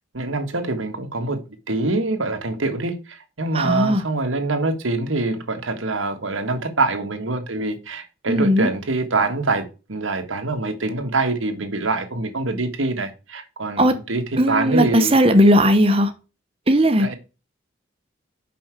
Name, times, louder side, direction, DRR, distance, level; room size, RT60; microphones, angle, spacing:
voice 1, 0.1-1.4 1.7-15.1 17.0-17.1, right 3 dB, 90° right, 1.5 m, -25 dB
voice 2, 3.5-4.0 8.3-8.7 13.8-13.9 14.4-16.1 16.7-17.1, equal, 30° right, 0.9 m, -16 dB
5.7 x 5.5 x 4.6 m
head